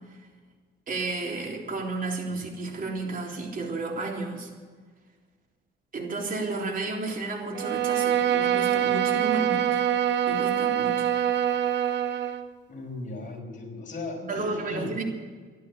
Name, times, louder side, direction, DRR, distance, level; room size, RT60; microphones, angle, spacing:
voice 1, 0.9-4.5 5.9-9.8 10.3-11.1 14.2-15.0, right 3 dB, 45° right, 0 dB, 3.6 m, -32 dB
Bowed string instrument, 7.5-12.5, right 10 dB, 60° right, 1.0 m, -25 dB
voice 2, 12.7-15.0, left 2 dB, 40° left, -1 dB, 5.3 m, -36 dB
13.5 x 11.5 x 8.4 m, 1.5 s
cardioid pair, 90°, 20 cm